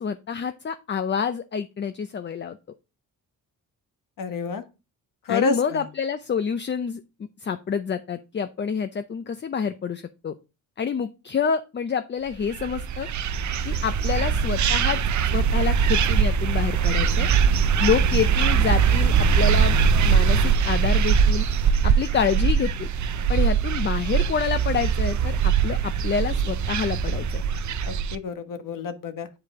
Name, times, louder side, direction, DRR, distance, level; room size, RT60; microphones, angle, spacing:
voice 1, 0.0-2.6 5.3-7.0 7.4-10.3 10.8-13.1 13.6-15.0 15.3-17.3 17.8-19.8 20.0-21.5 21.8-22.9 23.3-27.4, left 6 dB, 30° left, 10 dB, 0.5 m, -27 dB
voice 2, 4.2-4.6 5.2-5.9 27.8-29.3, left 5 dB, 65° left, 9 dB, 1.3 m, -29 dB
sound 1, 12.5-28.2, right 6 dB, 55° right, 0.6 m, -21 dB
8.6 x 4.8 x 3.6 m, 0.29 s
cardioid pair, 110°, 35 cm